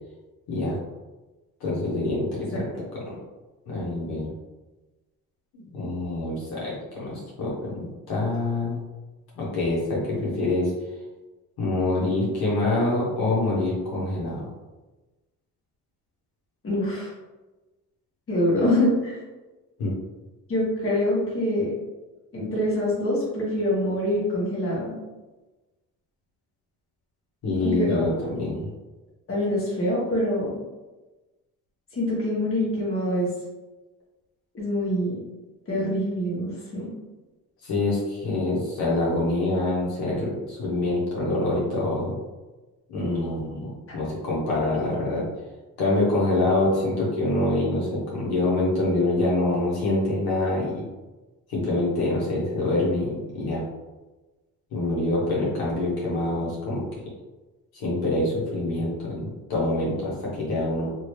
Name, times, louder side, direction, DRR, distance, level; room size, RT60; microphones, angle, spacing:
voice 1, 1.6-3.1 3.7-4.3 5.5-8.8 9.3-10.7 11.6-14.5 19.8-19.9 27.4-28.7 37.6-42.2 42.9-45.2 45.8-50.9 51.5-53.6 54.7-56.8 57.7-60.9, left 2 dB, 80° left, -6 dB, 1.2 m, -25 dB
voice 2, 16.6-17.1 18.3-19.1 20.5-21.7 22.3-25.0 27.6-28.0 28.3-28.4 29.3-30.5 31.9-33.3 34.5-35.2 35.7-36.9, left 1 dB, 35° left, -6 dB, 1.4 m, -25 dB
2.9 x 2.7 x 3.2 m, 1.1 s
cardioid pair, 105°, 36 cm